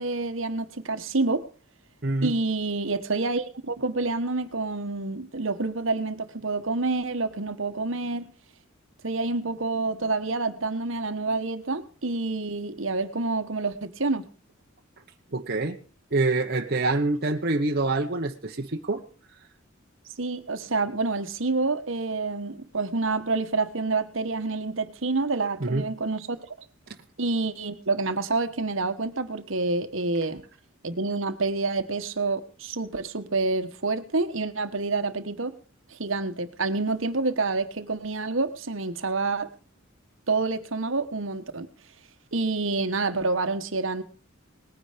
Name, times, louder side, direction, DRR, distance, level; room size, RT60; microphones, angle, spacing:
voice 1, 0.0-1.5 2.2-8.3 9.0-14.3 20.2-26.5 27.2-30.4 30.8-35.5 35.9-39.5 40.3-41.7 42.3-44.0, right 3 dB, 65° right, 1.4 m, -28 dB
voice 2, 15.3-15.8 16.1-19.0 25.6-25.8, right 2 dB, 50° right, 1.1 m, -26 dB
19.5 x 10.0 x 5.1 m
head